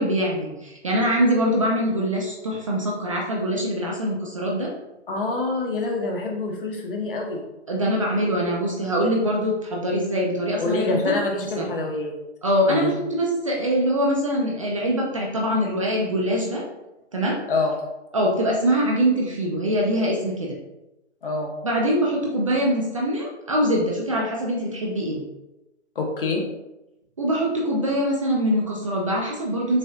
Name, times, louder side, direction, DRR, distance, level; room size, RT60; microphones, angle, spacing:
voice 1, 0.0-4.7 7.7-11.6 12.4-16.6 17.1-17.4 18.1-20.6 21.6-25.2 27.2-29.8, equal, 30° right, -2 dB, 0.5 m, -23 dB
voice 2, 5.1-7.4 10.6-12.1 12.7-12.9 17.5-17.7 21.2-21.5 25.9-26.4, left 3 dB, 50° left, 1 dB, 1.0 m, -26 dB
6.4 x 2.6 x 2.3 m, 0.96 s
hypercardioid pair, 150°, 35 cm